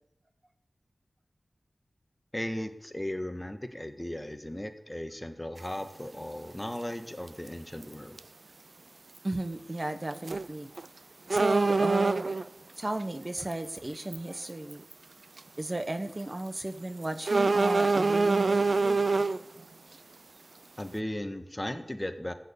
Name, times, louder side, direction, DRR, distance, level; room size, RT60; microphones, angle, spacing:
voice 1, 2.3-8.2 20.8-22.3, left 1 dB, 15° left, 7 dB, 1.6 m, -36 dB
sound 1, 5.6-5.7 7.3-7.5 7.8-7.9 8.2-8.3 10.2-10.5 10.8-10.9 11.3-12.5 13.5-13.7 14.1-14.2 14.7-14.9 15.4-15.5 17.3-19.4, right 3 dB, 55° right, 0.5 m, -25 dB
voice 2, 9.2-10.9 11.3-12.5 12.8-14.8 15.6-19.0, right 1 dB, 30° right, 8 dB, 1.0 m, -34 dB
15.0 x 9.1 x 8.6 m, 0.85 s
wide cardioid pair, 85°, 0 cm